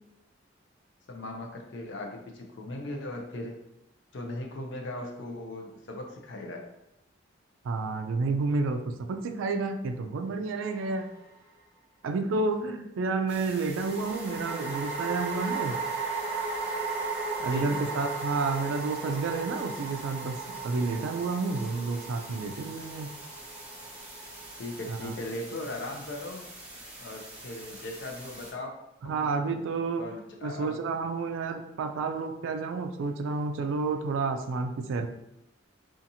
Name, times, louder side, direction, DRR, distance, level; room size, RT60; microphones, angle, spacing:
voice 1, 1.1-3.6 4.1-6.6 17.4-17.8 24.6-26.5 27.0-28.7 29.0-29.3 30.0-30.8, left 1 dB, 65° left, 2 dB, 0.5 m, -38 dB
voice 2, 7.6-11.1 12.0-15.8 17.4-20.4 20.6-23.1 24.9-25.1 29.0-35.1, right 3 dB, 75° right, 7 dB, 0.3 m, -30 dB
sound 1, 10.7-11.4 13.8-25.1, right 4 dB, 45° right, 0.8 m, -36 dB
sound 2, 13.3-28.5, right 1 dB, 5° right, 0.5 m, -46 dB
2.6 x 2.4 x 2.7 m, 0.85 s
head